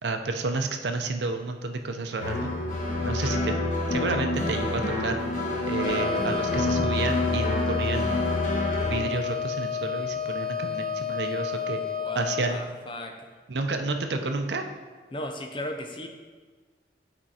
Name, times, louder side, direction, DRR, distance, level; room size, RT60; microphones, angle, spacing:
voice 1, 0.0-2.5 3.0-3.5 3.9-5.2 5.7-8.3 8.9-11.8 12.2-12.6 13.5-14.6, right 3 dB, 80° right, 5 dB, 0.6 m, -30 dB
sound 1, 2.2-9.0, left 1 dB, 45° left, 1.1 m, -27 dB
Wind instrument woodwind instrument, 5.7-12.5, left 7 dB, 50° right, 1.1 m, -31 dB
voice 2, 11.8-13.2 15.1-16.1, left 1 dB, 30° left, 4 dB, 0.6 m, -36 dB
8.8 x 4.4 x 4.2 m, 1.5 s
head